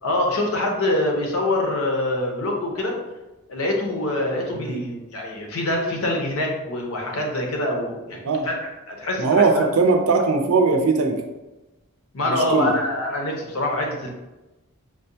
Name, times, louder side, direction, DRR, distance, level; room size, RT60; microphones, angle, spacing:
voice 1, 0.0-3.0 3.5-9.7 12.1-14.1, left 1 dB, 70° left, 1 dB, 0.7 m, -25 dB
voice 2, 4.5-4.9 8.2-8.5 9.2-11.2 12.2-12.8, right 4 dB, 85° right, 4 dB, 0.5 m, -20 dB
4.7 x 2.2 x 2.7 m, 1.1 s
head